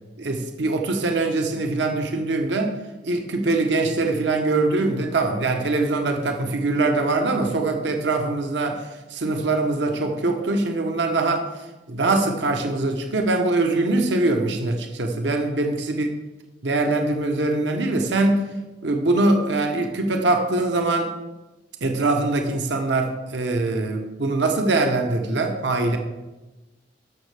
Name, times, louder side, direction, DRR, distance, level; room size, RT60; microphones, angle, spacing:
voice 1, 0.2-2.7 3.0-8.8 9.1-11.5 11.9-16.1 16.6-18.4 18.8-21.1 21.8-26.0, right 2 dB, 75° right, 4 dB, 0.9 m, -22 dB
13.0 x 6.3 x 3.3 m, 1.1 s
head